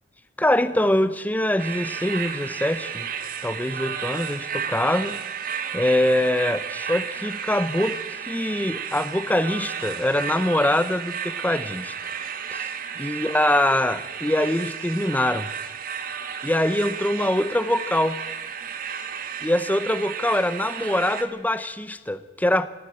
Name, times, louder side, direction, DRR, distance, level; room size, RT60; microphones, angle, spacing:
voice 1, 0.4-3.1 3.4-5.2 5.7-8.0 8.3-11.9 12.5-12.6 13.0-15.5 16.4-18.2 19.4-22.7, left 1 dB, 10° left, 13 dB, 0.8 m, -23 dB
sound 1, 1.6-21.2, right 7 dB, 50° right, 1.7 m, -33 dB
20.5 x 16.0 x 8.4 m, 1.2 s
head